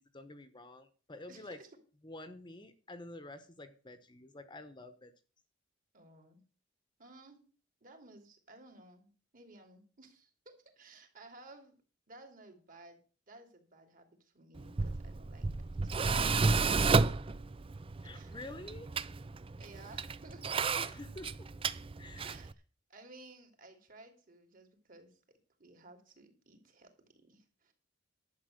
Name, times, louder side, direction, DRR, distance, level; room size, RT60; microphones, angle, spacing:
voice 1, 0.1-1.6 2.0-5.1 18.0-18.9 20.7-21.5 22.0-22.3, left 2 dB, 25° left, 10 dB, 1.0 m, -49 dB
voice 2, 1.3-1.7 5.9-6.4 7.0-7.4 7.8-11.8 12.1-13.0 13.3-15.5 15.8-16.4 18.1-18.4 19.6-20.6 22.2-22.5 22.9-25.2 25.6-27.7, right 2 dB, 45° right, 5 dB, 3.0 m, -56 dB
Tools, 14.6-22.5, right 4 dB, 30° right, 0.5 m, -32 dB
11.5 x 8.2 x 6.5 m, 0.39 s
head